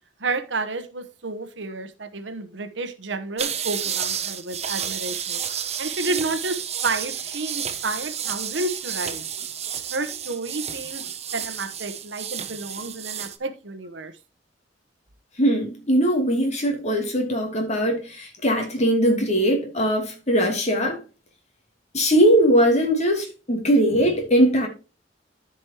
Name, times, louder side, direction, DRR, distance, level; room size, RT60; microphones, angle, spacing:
voice 1, 0.2-5.4 5.8-9.2 9.9-11.0 11.3-14.1, right 3 dB, 75° right, 1.1 m, -30 dB
sound 1, 3.4-13.4, right 8 dB, 35° right, 0.9 m, -31 dB
voice 2, 15.4-21.0 21.9-24.7, equal, 40° left, 2.8 m, -20 dB
13.0 x 5.3 x 3.0 m
head